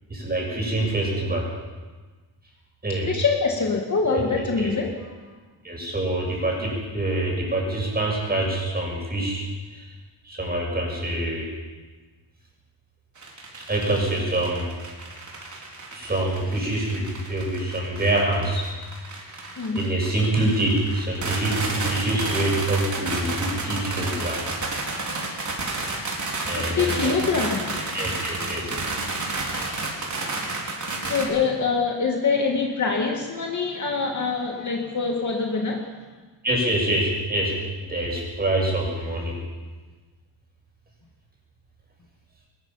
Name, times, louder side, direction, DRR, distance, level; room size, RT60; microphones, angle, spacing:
voice 1, 0.1-1.5 2.8-3.1 4.1-4.7 5.6-9.9 10.2-11.5 13.7-14.7 15.9-18.7 19.3-19.5 19.7-24.4 26.4-27.2 27.9-28.7 36.4-39.4, right 1 dB, 20° right, -2 dB, 6.9 m, -25 dB
voice 2, 3.1-5.1 19.6-19.8 26.6-27.8 31.1-36.0, left 4 dB, 40° left, 1 dB, 2.2 m, -24 dB
sound 1, 13.2-31.2, right 2 dB, 40° right, 4.0 m, -31 dB
22.0 x 20.5 x 5.8 m, 1.3 s
wide cardioid pair, 160°, 47 cm